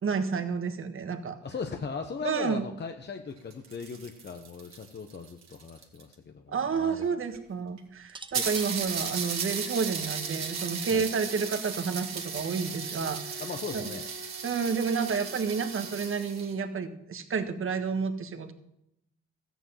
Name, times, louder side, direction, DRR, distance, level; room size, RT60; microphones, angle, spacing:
voice 1, 0.0-1.4 2.2-2.7 6.5-13.4 13.7-13.9 14.4-18.5, right 5 dB, 45° right, 8 dB, 1.5 m, -30 dB
voice 2, 1.4-7.2 8.3-8.5 10.9-11.1 13.4-14.1, left 5 dB, 35° left, 6 dB, 1.0 m, -38 dB
sound 1, 3.4-6.1 7.0-7.1 7.3-7.4 7.8-7.9 8.3-16.5, right 6 dB, 60° right, 2.2 m, -35 dB
sound 2, 8.0-11.2 12.3-12.6, right 3 dB, 15° right, 0.7 m, -47 dB
14.0 x 9.2 x 5.6 m, 0.81 s
cardioid pair, 90°, 30 cm